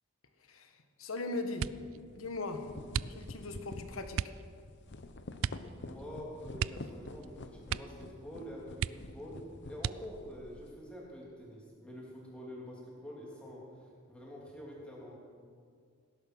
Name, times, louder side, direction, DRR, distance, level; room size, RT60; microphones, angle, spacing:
voice 1, 0.4-1.7 2.1-2.7 3.1-4.3, left 2 dB, 75° left, 6 dB, 1.5 m, -39 dB
sound 1, 1.5-2.0 2.9-3.5 4.1-4.4 5.4-5.7 6.0-6.1 6.5-7.3 7.6-8.1 8.4-8.5 8.8-9.3 9.8-10.3 11.0-11.6 12.0-12.4, right 8 dB, 65° right, 0.3 m, -37 dB
sound 2, 1.7-1.8 2.3-10.8, left 2 dB, 55° left, 0.8 m, -47 dB
voice 2, 5.7-15.2, equal, 5° left, -4 dB, 3.3 m, -47 dB
18.0 x 11.0 x 6.3 m, 2.1 s
head